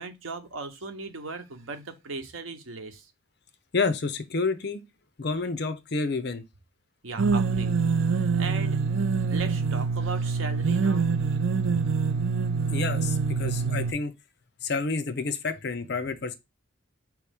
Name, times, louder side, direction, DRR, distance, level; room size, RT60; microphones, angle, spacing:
voice 1, 0.0-3.1 7.0-7.8 8.1-8.8 9.3-11.1, right 3 dB, 85° right, 0.9 m, -37 dB
voice 2, 3.7-4.8 5.2-6.4 12.7-14.1 14.6-16.3, left 4 dB, 55° left, 0.6 m, -29 dB
sound 1, 7.2-13.9, right 5 dB, 65° right, 0.4 m, -25 dB
4.8 x 3.1 x 3.4 m
head